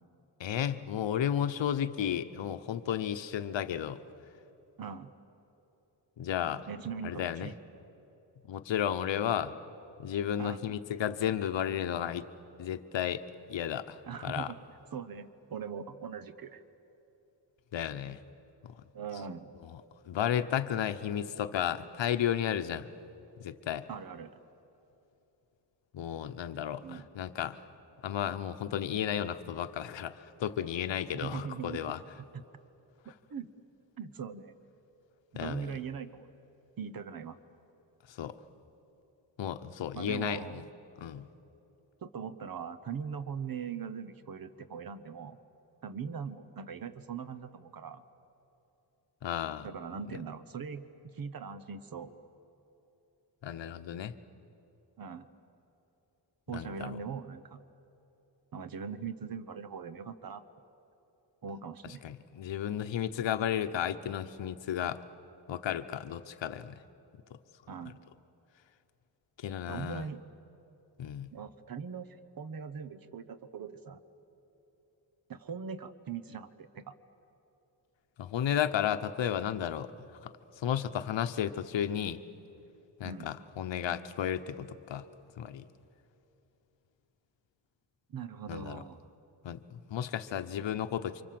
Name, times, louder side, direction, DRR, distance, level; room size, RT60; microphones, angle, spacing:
voice 1, 0.4-4.0 6.2-6.7 7.0-7.5 8.5-9.5 10.0-12.3 12.6-13.2 13.5-14.5 17.7-18.2 18.6-18.7 19.7-22.9 23.4-23.9 25.9-27.6 28.0-32.0 35.3-35.8 38.1-38.4 39.4-40.6 41.0-41.3 49.2-49.7 53.4-54.1 56.5-57.0 62.0-65.0 65.5-66.8 69.4-70.1 71.0-71.3 78.2-79.9 80.2-80.3 80.6-82.2 83.0-85.1 85.4-85.6 88.5-88.8 89.4-91.2, left 10 dB, 85° left, 10 dB, 1.0 m, -33 dB
voice 2, 4.8-5.1 6.7-7.6 10.4-10.6 14.1-14.6 14.9-16.6 18.9-19.5 23.9-24.4 26.8-27.1 31.1-31.9 32.3-32.4 33.3-33.5 34.0-34.6 35.3-36.3 36.8-37.4 39.9-40.7 42.0-45.4 45.8-48.0 49.6-52.1 55.0-55.3 56.5-57.6 58.5-60.4 61.4-62.0 67.7-68.0 69.7-70.2 71.3-74.0 75.3-76.9 83.0-83.3 88.1-89.0, right 6 dB, 50° right, 12 dB, 1.1 m, -41 dB
29.0 x 25.0 x 7.7 m, 3.0 s
wide cardioid pair, 135°, 43 cm